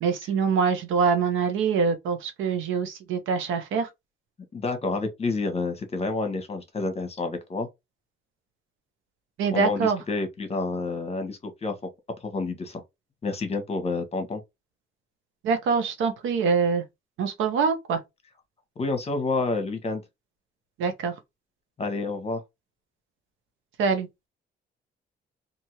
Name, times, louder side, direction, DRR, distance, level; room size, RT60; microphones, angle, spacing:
voice 1, 0.0-3.9 9.4-10.0 15.4-16.8 17.2-18.0 20.8-21.1 23.8-24.1, right 5 dB, 85° right, 0.8 m, -24 dB
voice 2, 4.5-7.7 9.5-11.7 12.2-12.8 13.2-14.4 18.8-20.0 21.8-22.4, left 3 dB, 30° left, 1.0 m, -29 dB
2.7 x 2.6 x 3.0 m
cardioid pair, 90°, 20 cm